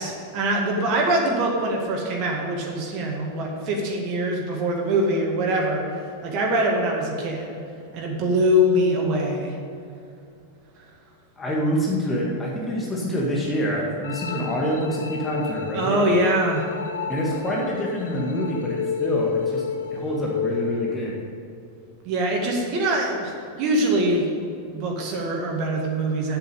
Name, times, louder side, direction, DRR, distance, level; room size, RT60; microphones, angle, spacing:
voice 1, 0.0-5.8 6.2-7.5 7.9-9.5 15.7-16.7 22.0-24.3 24.7-26.4, right 1 dB, 40° right, -1 dB, 2.0 m, -23 dB
voice 2, 11.4-16.0 17.1-19.6 19.9-21.2, equal, 15° left, -3 dB, 1.9 m, -26 dB
sound 1, 14.0-21.0, left 6 dB, 60° left, 0.7 m, -30 dB
8.2 x 7.7 x 8.0 m, 2.6 s
figure-of-eight pair, 90°, 0 cm